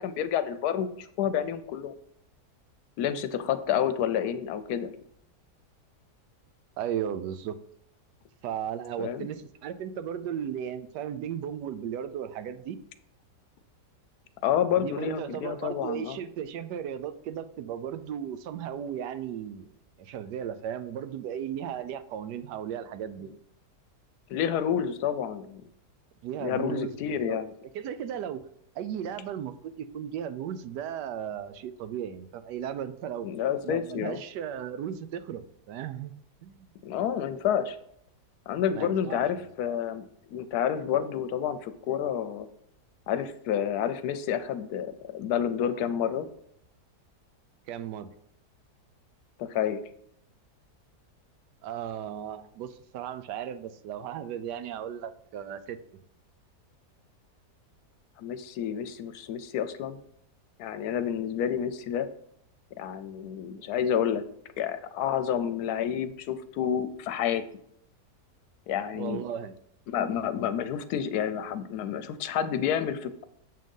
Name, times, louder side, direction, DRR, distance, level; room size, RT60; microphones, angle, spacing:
voice 1, 0.0-1.9 3.0-4.9 9.0-9.3 14.4-16.2 24.3-25.6 26.4-27.5 33.2-34.2 36.8-37.8 38.5-40.1 40.3-42.5 43.1-46.3 49.4-49.8 58.2-60.0 60.6-62.1 62.8-64.2 64.6-67.4 68.7-69.2 69.9-73.2, left 9 dB, 75° left, 11 dB, 1.1 m, -29 dB
voice 2, 6.8-7.6 8.4-12.8 14.8-23.3 26.2-27.4 27.7-28.4 28.7-36.1 36.4-36.7 38.7-39.5 47.7-48.1 51.6-55.8 68.9-69.5, right 9 dB, 90° right, 12 dB, 1.2 m, -36 dB
7.5 x 3.8 x 5.3 m, 0.70 s
omnidirectional pair, 1.8 m